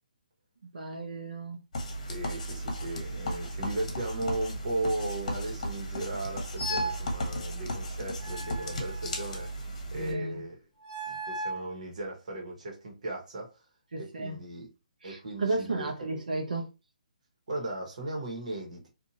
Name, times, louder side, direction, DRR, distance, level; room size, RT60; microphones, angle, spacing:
voice 1, 0.7-1.6 9.9-10.4 13.9-14.3 15.0-16.7, right 2 dB, 90° right, 0.7 m, -33 dB
sound 1, 1.7-10.1, equal, 50° left, 1.0 m, -35 dB
voice 2, 2.1-10.6 11.1-13.5 14.0-14.7 15.0-15.9 17.5-18.9, right 2 dB, 60° right, 1.2 m, -36 dB
sound 2, 6.6-7.1 8.2-9.5 10.8-11.7, right 1 dB, ahead, 1.0 m, -36 dB
2.6 x 2.5 x 2.8 m
hypercardioid pair, 165°, 4 cm